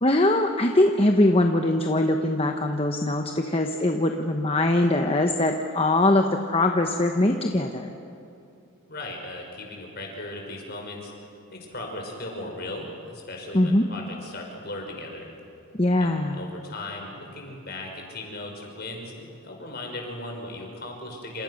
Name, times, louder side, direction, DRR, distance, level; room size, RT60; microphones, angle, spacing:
voice 1, 0.0-7.9 13.5-13.8 15.8-16.5, left 1 dB, 25° left, 4 dB, 1.1 m, -22 dB
voice 2, 8.9-11.1 11.5-15.3 16.0-21.4, left 2 dB, 45° left, 1 dB, 5.4 m, -37 dB
28.5 x 27.5 x 6.6 m, 2.7 s
head